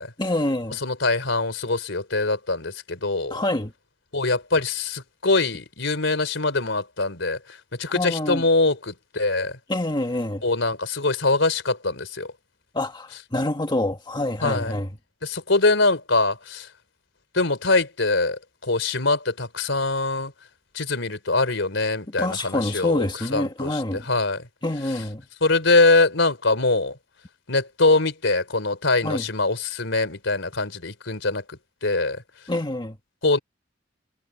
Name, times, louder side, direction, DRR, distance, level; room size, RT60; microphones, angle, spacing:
voice 1, 0.2-0.8 3.3-3.7 7.9-8.4 9.7-10.4 12.7-14.9 22.2-24.0 24.6-25.3 29.0-29.2 32.5-33.0, left 1 dB, 25° left, 1.7 m, -26 dB
voice 2, 0.7-3.4 4.1-9.6 10.4-12.3 14.4-14.8 15.2-16.7 17.3-20.3 20.7-24.5 25.4-27.0 27.5-32.2 33.2-33.4, left 3 dB, 75° left, 4.0 m, -23 dB
head